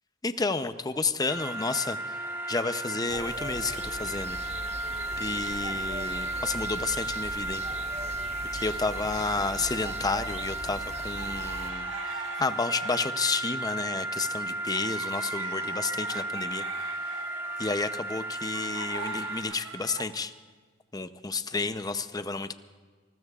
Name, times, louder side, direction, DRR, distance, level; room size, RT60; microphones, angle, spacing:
voice 1, 0.2-2.2 2.5-4.4 5.2-7.6 8.5-16.6 17.6-20.3 20.9-22.5, left 3 dB, 20° left, 11 dB, 0.6 m, -31 dB
sound 1, 1.3-19.4, right 1 dB, 15° right, 3.3 m, -34 dB
sound 2, 3.1-11.7, right 2 dB, 35° right, 1.1 m, -41 dB
sound 3, 8.3-9.7 10.0-20.0, right 4 dB, 90° right, 1.5 m, -42 dB
26.5 x 20.0 x 2.4 m, 1.5 s
head